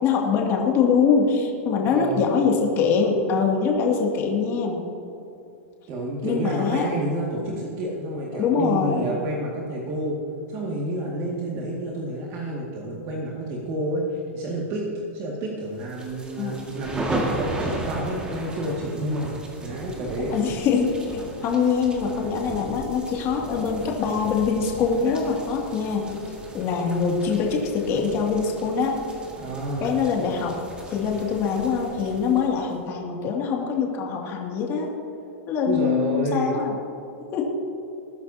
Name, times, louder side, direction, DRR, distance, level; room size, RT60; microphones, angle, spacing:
voice 1, 0.0-4.8 6.2-6.9 8.3-9.2 16.4-16.6 20.3-26.1 26.5-28.9 29.8-30.5 30.9-34.9 35.5-36.7 37.3-37.5, left 5 dB, 35° left, -1 dB, 2.4 m, -23 dB
voice 2, 1.8-2.3 5.9-10.2 10.5-14.8 15.1-20.3 29.4-29.9 35.7-36.6, right 1 dB, 40° right, -3 dB, 2.1 m, -29 dB
sound 1, 15.8-32.7, right 1 dB, 15° right, 1.9 m, -36 dB
20.5 x 10.5 x 2.8 m, 2.8 s
hypercardioid pair, 135°, 7 cm